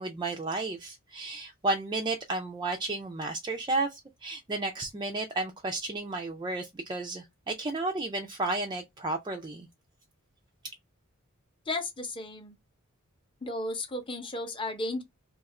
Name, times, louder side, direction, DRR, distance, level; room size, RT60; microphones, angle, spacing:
voice 1, 0.0-9.7, right 2 dB, 20° right, 0.4 m, -32 dB
voice 2, 11.7-12.6 13.4-15.0, left 2 dB, 25° left, 0.7 m, -34 dB
2.8 x 2.4 x 4.1 m
head